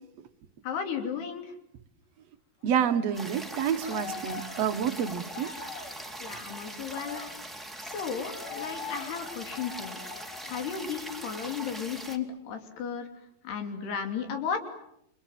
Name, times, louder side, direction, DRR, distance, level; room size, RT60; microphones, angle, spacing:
voice 1, 0.6-1.5 6.2-7.2 7.9-10.0 10.4-13.1 13.4-14.6, left 7 dB, 80° left, 5 dB, 5.0 m, -34 dB
voice 2, 2.6-5.5, right 8 dB, 60° right, 7 dB, 1.9 m, -28 dB
Cheering, 2.7-10.7 11.0-11.2 11.6-12.6, left 5 dB, 55° left, 4.6 m, -44 dB
sound 1, 3.1-12.2, right 1 dB, ahead, 1.4 m, -41 dB
30.0 x 26.0 x 7.7 m, 0.79 s
omnidirectional pair, 4.6 m